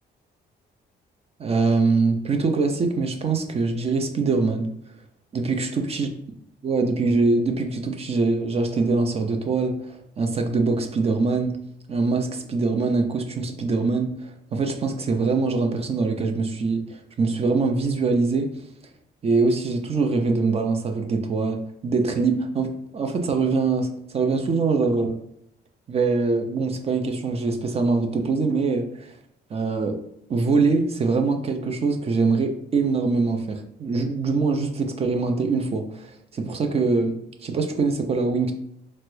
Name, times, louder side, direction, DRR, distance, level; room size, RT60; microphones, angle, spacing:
voice 1, 1.4-4.7 5.3-6.1 6.6-9.8 10.2-11.6 11.9-16.8 17.2-18.6 19.2-25.2 25.9-29.1 29.5-30.0 30.3-38.5, right 4 dB, 35° right, 5 dB, 0.4 m, -23 dB
3.3 x 2.0 x 3.0 m, 0.75 s
cardioid pair, 110°, 18 cm